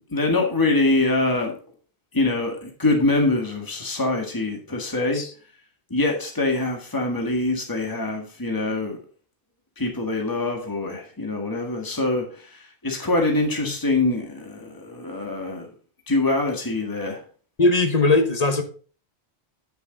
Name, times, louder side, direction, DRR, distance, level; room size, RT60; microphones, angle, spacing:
voice 1, 0.1-1.5 2.1-5.2 5.9-9.0 9.8-15.7 16.1-17.2, left 2 dB, 20° left, 2 dB, 1.7 m, -24 dB
voice 2, 4.9-5.3 13.6-13.7 17.6-18.6, left 2 dB, 40° left, 7 dB, 1.2 m, -20 dB
9.0 x 6.9 x 3.9 m, 0.39 s
omnidirectional pair, 1.1 m